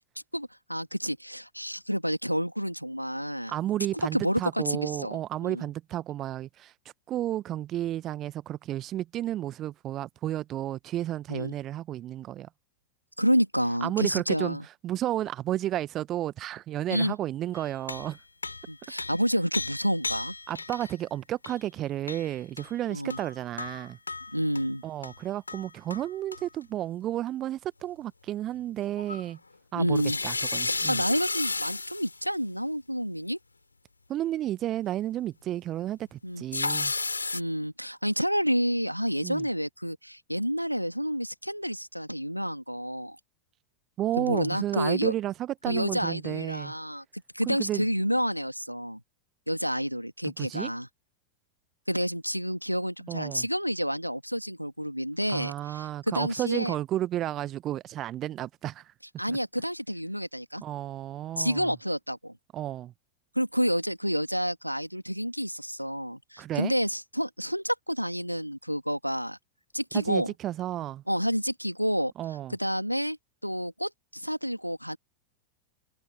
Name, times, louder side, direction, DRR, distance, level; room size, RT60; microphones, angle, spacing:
voice 1, 0.3-3.5 4.1-5.6 11.3-11.5 13.2-14.6 16.9-17.2 18.7-20.3 22.9-23.2 24.3-24.8 29.7-30.2 30.7-33.4 36.2-36.4 37.3-43.2 44.2-45.1 45.7-49.0 49.5-50.9 51.9-56.7 59.2-60.6 61.4-62.3 63.4-69.4 69.7-70.3 71.1-72.1 72.5-73.2 73.4-75.0, equal, 90° right, 2.0 m, -29 dB
voice 2, 3.5-6.7 7.1-12.5 13.8-14.6 14.8-18.2 20.5-24.0 24.8-29.4 29.7-31.0 34.1-36.9 39.2-39.4 44.0-46.7 47.5-47.9 50.2-50.7 53.1-53.5 55.3-58.9 59.3-59.4 60.6-61.7 62.5-62.9 66.4-66.7 69.9-71.0 72.2-72.5, right 13 dB, 30° right, 0.9 m, -32 dB
sound 1, 17.5-20.9 21.4-21.6 22.1-22.7 23.1-24.7 25.0-25.2 25.5-26.1 26.3-26.4 29.0-29.2 30.0-32.2 36.5-37.4, left 3 dB, 80° left, 3.9 m, -33 dB
figure-of-eight pair, 90°, 0 cm